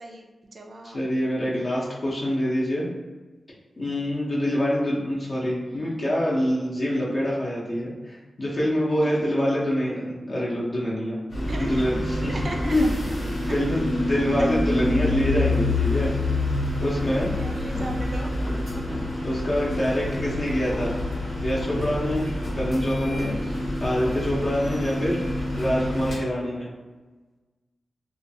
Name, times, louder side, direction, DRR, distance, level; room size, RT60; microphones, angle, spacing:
voice 1, 0.0-1.1 5.6-6.0 9.0-9.5 11.5-12.8 14.4-14.9 17.1-18.5 18.7-19.1 20.2-20.4 23.3-23.7 24.6-24.9, right 2 dB, 45° right, 1 dB, 0.3 m, -39 dB
voice 2, 0.9-2.9 3.8-11.2 11.6-12.3 12.6-12.9 13.5-16.1 16.8-17.3 19.0-20.9 21.4-22.3 22.6-23.4 23.8-25.2 25.5-26.7, equal, 40° left, -6 dB, 0.6 m, -25 dB
sound 1, 11.3-26.2, left 1 dB, 90° left, 1.2 m, -27 dB
2.4 x 2.3 x 2.6 m, 1.3 s
wide cardioid pair, 130°, 0 cm